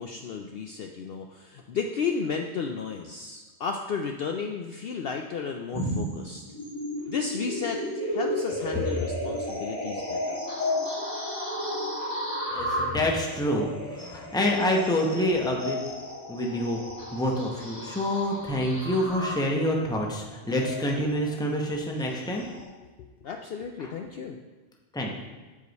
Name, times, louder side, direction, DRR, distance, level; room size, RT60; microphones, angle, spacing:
voice 1, 0.0-6.4 7.1-10.4 23.0-24.4, left 5 dB, 65° left, 3 dB, 0.7 m, -33 dB
sound 1, 5.7-22.6, left 1 dB, 25° left, 2.5 m, -33 dB
voice 2, 12.5-15.8 16.3-16.8 17.1-22.4 23.8-23.9 24.9-25.1, left 1 dB, 5° left, 0 dB, 0.7 m, -27 dB
8.4 x 5.0 x 4.0 m, 1.3 s
omnidirectional pair, 1.3 m